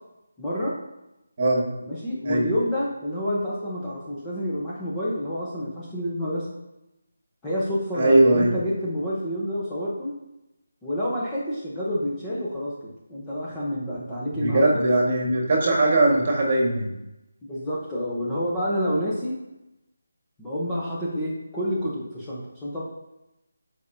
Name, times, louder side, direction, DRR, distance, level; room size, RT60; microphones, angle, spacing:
voice 1, 0.4-0.8 1.8-6.5 7.4-10.1 10.8-14.8 17.4-19.3 20.4-22.8, equal, 10° left, -8 dB, 0.9 m, -28 dB
voice 2, 7.9-8.5 14.4-16.9, right 2 dB, 35° right, -1 dB, 1.8 m, -20 dB
9.3 x 5.0 x 2.8 m, 0.93 s
figure-of-eight pair, 170°, 0 cm